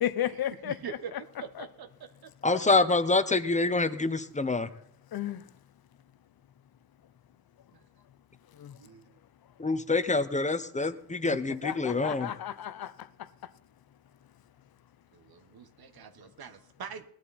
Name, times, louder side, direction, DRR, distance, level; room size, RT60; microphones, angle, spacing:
voice 1, 0.0-1.2 1.6-1.7 5.1-5.5 8.5-8.8 11.2-13.5, left 11 dB, 70° left, 0.7 m, -34 dB
voice 2, 0.6-1.1 1.4-2.3 7.7-7.8 8.8-9.2 15.1-17.0, right 7 dB, 75° right, 1.3 m, -44 dB
voice 3, 2.4-4.7 9.6-12.3, left 3 dB, 20° left, 0.8 m, -26 dB
18.5 x 11.5 x 4.2 m
wide cardioid pair, 110°, 37 cm